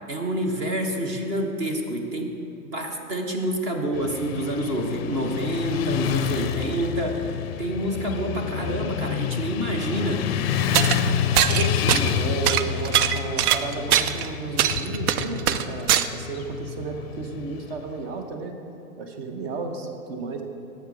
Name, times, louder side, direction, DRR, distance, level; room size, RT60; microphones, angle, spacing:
voice 1, 0.1-2.4 2.6-7.3 7.6-10.3, right 1 dB, 20° right, 3 dB, 0.4 m, -27 dB
Motorcycle / Traffic noise roadway noise, 3.9-18.0, left 8 dB, 45° left, 0.4 m, -28 dB
sound 1, 10.7-11.0 11.4-12.2 12.5-14.3 14.6-16.1, right 10 dB, 80° right, 0.5 m, -21 dB
voice 2, 11.5-18.5 19.0-20.4, right 4 dB, 45° right, 5 dB, 1.0 m, -32 dB
7.8 x 6.8 x 5.1 m, 2.9 s
hypercardioid pair, 150°, 44 cm